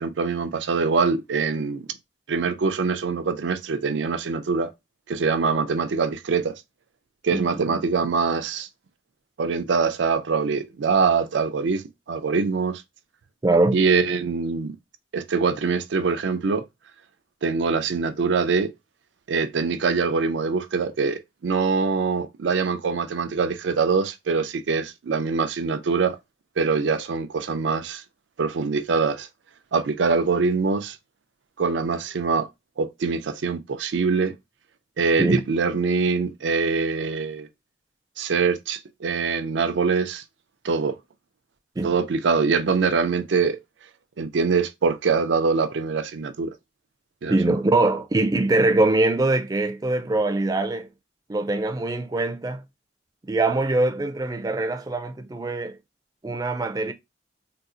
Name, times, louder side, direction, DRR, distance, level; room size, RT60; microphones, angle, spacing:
voice 1, 0.0-1.8 2.3-4.7 5.1-6.6 7.2-8.7 9.4-11.8 12.1-12.8 13.7-14.8 15.1-16.6 17.4-18.7 19.3-26.2 26.6-28.0 28.4-29.3 29.7-31.0 31.6-32.5 32.8-34.3 35.0-37.5 38.2-40.2 40.6-41.0 41.8-43.6 44.2-46.5 47.2-47.6, right 4 dB, 90° right, 0.4 m, -23 dB
voice 2, 7.3-7.8 13.4-13.8 35.2-35.4 41.8-41.9 47.3-50.9 51.3-52.6 53.2-55.8 56.2-56.9, right 2 dB, 20° right, 0.4 m, -23 dB
4.0 x 2.4 x 2.4 m
head